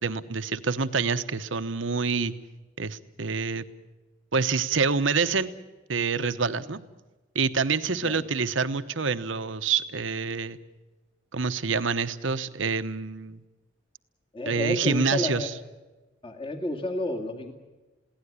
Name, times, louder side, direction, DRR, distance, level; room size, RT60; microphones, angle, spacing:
voice 1, 0.0-2.3 2.8-3.7 4.3-5.5 5.9-6.8 7.3-10.6 11.3-13.4 14.5-15.5, right 5 dB, 75° right, 11 dB, 1.0 m, -27 dB
voice 2, 7.9-8.3 14.3-15.5 16.2-17.5, left 2 dB, 25° left, 3 dB, 2.2 m, -31 dB
22.0 x 17.0 x 9.6 m, 1.2 s
head